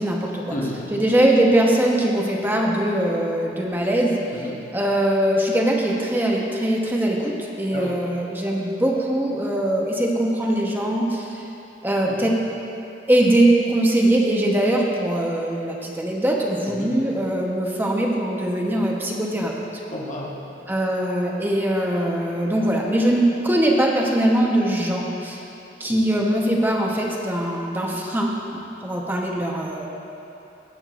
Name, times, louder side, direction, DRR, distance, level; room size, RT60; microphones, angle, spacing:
voice 1, 0.0-0.6 0.9-4.2 4.7-11.4 11.8-12.4 13.1-19.5 20.7-25.4 25.8-29.9, right 1 dB, 10° right, -1 dB, 1.0 m, -21 dB
voice 2, 0.5-0.9 4.3-4.6 7.7-8.0 12.0-12.2 16.7-17.0 19.9-20.4 25.9-26.2, left 1 dB, 45° left, -3 dB, 1.2 m, -32 dB
16.5 x 8.7 x 2.5 m, 2.9 s
head